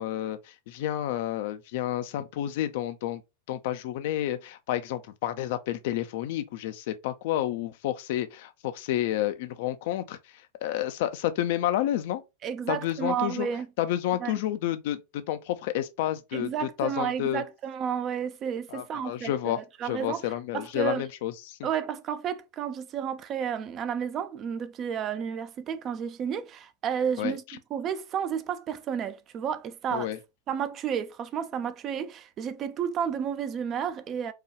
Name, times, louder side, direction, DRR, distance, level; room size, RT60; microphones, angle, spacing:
voice 1, 0.0-3.2 3.5-10.2 10.6-12.2 12.7-13.5 13.8-17.4 18.7-21.6 27.2-27.3 29.9-30.2, left 12 dB, 50° left, 0.4 m, -30 dB
voice 2, 12.4-13.7 14.2-14.4 16.3-21.0 21.6-30.1 30.5-34.3, right 8 dB, 30° right, 0.5 m, -32 dB
4.7 x 2.3 x 3.1 m
figure-of-eight pair, 90°, 0 cm